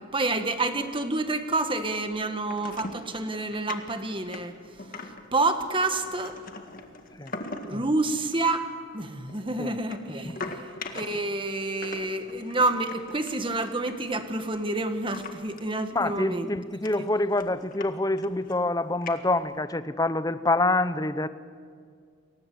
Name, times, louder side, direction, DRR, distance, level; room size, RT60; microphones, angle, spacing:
voice 1, 0.0-4.5 5.0-6.4 7.6-8.7 8.9-10.6 10.9-16.5, right 2 dB, 25° right, 8 dB, 1.7 m, -28 dB
sound 1, 2.5-3.1 3.3-3.8 4.2-5.3 5.7-7.8 8.2-8.5 9.3-11.3 11.8-14.6 15.1-15.6 15.9-16.0 16.5-16.6 16.8-17.9 18.2-18.6 19.0-19.6, left 3 dB, 40° left, 1.9 m, -41 dB
voice 2, 10.2-10.6 15.9-21.3, left 2 dB, 15° left, 13 dB, 0.8 m, -26 dB
29.5 x 23.0 x 8.0 m, 2.2 s
head